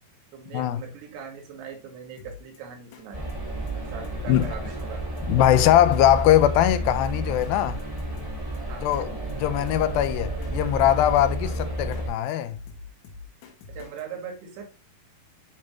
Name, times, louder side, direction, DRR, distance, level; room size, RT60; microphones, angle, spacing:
voice 1, 0.3-3.4 3.9-5.0 8.4-9.1 11.4-11.5 13.7-14.7, right 6 dB, 90° right, 3.5 m, -40 dB
Drum kit, 2.2-2.6 2.9-3.0 3.3-3.4 3.7-3.8 4.0-4.5 4.8-4.9 5.2-5.3 5.5-6.0 6.3-6.4 6.7-7.5 7.8-9.0 9.3-9.4 9.7-9.8 10.0-10.5 10.8-12.0 12.3-14.0, left 4 dB, 65° left, 2.1 m, -44 dB
sound 1, 3.1-12.1, right 1 dB, 40° right, 0.5 m, -31 dB
voice 2, 5.3-7.8 8.8-12.6, left 12 dB, 80° left, 2.1 m, -21 dB
10.5 x 3.6 x 3.0 m
omnidirectional pair, 4.6 m